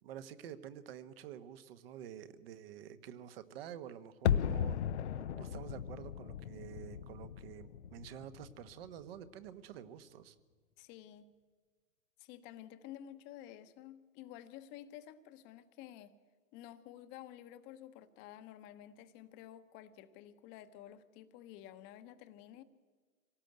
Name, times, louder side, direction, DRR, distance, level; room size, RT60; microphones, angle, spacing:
voice 1, 0.0-4.8 5.1-10.3, right 10 dB, 45° right, 12 dB, 1.4 m, -49 dB
sound 1, 4.3-9.2 9.5-9.6, left 9 dB, 55° left, 0.8 m, -36 dB
voice 2, 10.8-11.3 12.2-16.1 16.5-22.6, left 12 dB, 25° left, 11 dB, 1.1 m, -52 dB
25.0 x 18.0 x 8.0 m, 1.5 s
hypercardioid pair, 125°, 41 cm